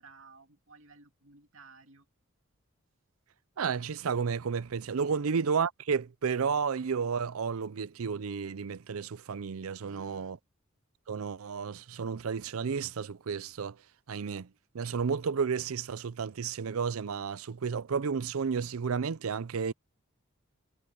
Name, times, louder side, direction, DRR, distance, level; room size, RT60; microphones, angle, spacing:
voice 1, 0.0-2.1 5.1-5.3 9.8-10.4, right 3 dB, 65° right, 2.6 m, -55 dB
voice 2, 3.6-10.4 11.1-13.8 14.1-14.5 14.7-19.7, right 6 dB, 85° right, 0.5 m, -32 dB
head